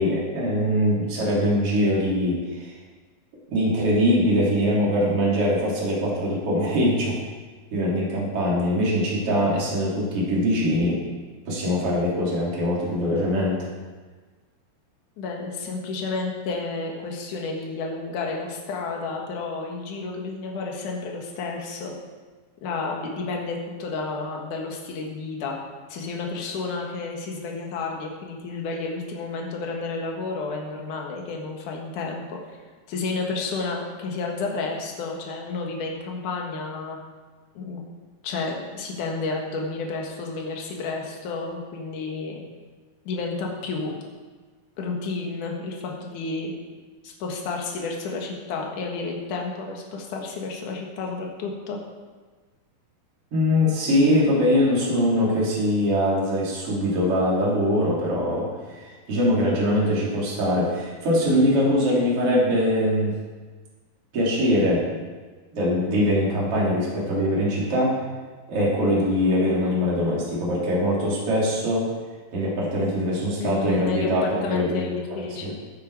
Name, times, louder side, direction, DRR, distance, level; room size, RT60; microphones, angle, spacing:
voice 1, 0.0-2.7 3.5-7.2 7.7-11.0 11.5-13.7 53.3-63.1 64.1-65.0 65.5-68.0 68.5-71.9 72.3-75.5, equal, 40° right, -5 dB, 4.0 m, -22 dB
voice 2, 15.2-21.9 22.6-25.5 25.9-32.4 32.9-37.0 37.5-37.8 38.2-42.4 43.1-43.9 44.8-46.5 47.0-51.8 73.4-75.5, left 3 dB, 60° left, 0 dB, 3.1 m, -31 dB
15.5 x 8.2 x 4.9 m, 1.4 s
omnidirectional pair, 4.3 m